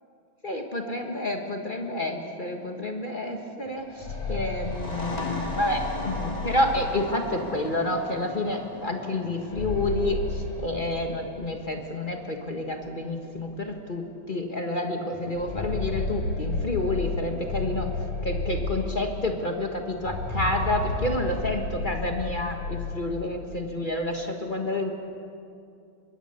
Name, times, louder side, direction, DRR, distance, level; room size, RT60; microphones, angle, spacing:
voice 1, 0.4-17.9 18.2-24.9, left 1 dB, 35° left, 3 dB, 0.8 m, -29 dB
sound 1, 3.7-7.5 9.2-11.4 11.7-11.8 12.7-12.8 13.3-13.4 15.1-19.2 19.9-23.3, left 3 dB, 85° left, 7.2 m, -32 dB
sound 2, 4.6-12.0, left 2 dB, 15° left, 2.2 m, -38 dB
25.0 x 22.5 x 6.8 m, 2.5 s
omnidirectional pair, 3.4 m